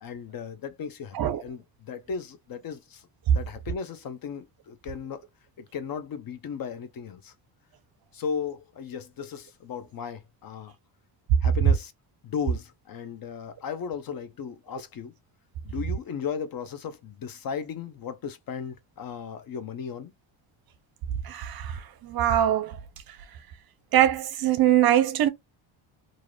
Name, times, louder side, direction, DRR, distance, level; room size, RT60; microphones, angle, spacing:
voice 1, 0.0-3.0 3.3-5.2 5.6-7.3 8.1-10.7 11.4-11.9 12.2-15.1 15.6-20.1, left 6 dB, 45° left, 0.6 m, -36 dB
voice 2, 21.2-22.8 23.9-25.3, right 12 dB, 50° right, 0.6 m, -23 dB
2.6 x 2.4 x 3.2 m
supercardioid pair, 85°, 48 cm